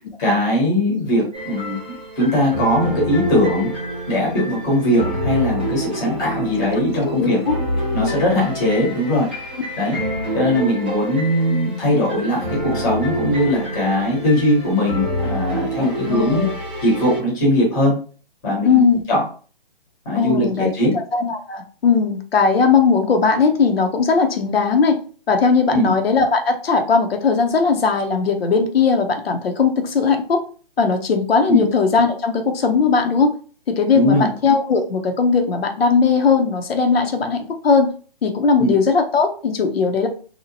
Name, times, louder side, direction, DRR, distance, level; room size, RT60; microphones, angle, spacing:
voice 1, 0.2-1.8 2.2-3.7 4.1-7.4 7.9-9.3 9.8-10.0 10.3-16.4 16.8-17.9 18.4-18.8 19.1-19.2 20.0-21.0 25.7-25.9 31.5-31.7 33.9-34.3 38.6-38.7, left 1 dB, 10° left, -4 dB, 0.8 m, -19 dB
sound 1, 1.3-17.2, right 1 dB, 15° right, 0.3 m, -27 dB
voice 2, 7.0-7.6 15.8-16.6 18.6-19.0 20.1-20.7 21.1-25.0 25.3-30.4 30.8-33.3 33.7-37.4 37.6-37.9 38.2-40.1, left 5 dB, 80° left, 5 dB, 0.7 m, -18 dB
2.7 x 2.1 x 2.7 m, 0.39 s
hypercardioid pair, 150°, 30 cm